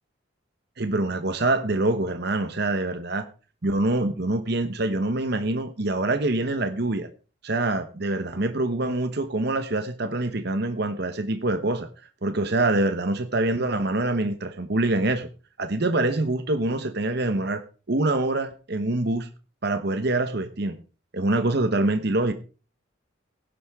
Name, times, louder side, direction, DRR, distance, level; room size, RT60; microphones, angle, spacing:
voice 1, 0.8-3.2 3.6-7.1 7.4-11.9 12.2-15.3 15.6-17.6 17.9-19.3 19.6-20.8 21.1-22.3, right 2 dB, 55° right, 8 dB, 1.1 m, -25 dB
16.5 x 10.5 x 3.6 m, 0.36 s
head